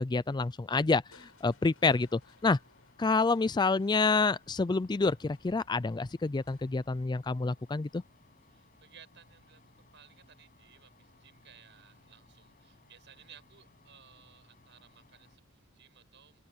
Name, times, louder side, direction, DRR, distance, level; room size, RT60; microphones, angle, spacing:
voice 1, 0.0-2.6 3.0-8.0, left 3 dB, 20° left, 0.4 m, -28 dB
sound 1, 1.0-15.4, left 3 dB, 40° left, 7.6 m, -64 dB
Crushing, 1.1-9.1 10.6-11.1 11.6-11.7, left 4 dB, 85° left, 6.9 m, -65 dB
voice 2, 8.5-16.4, right 8 dB, 60° right, 7.0 m, -59 dB
open air
head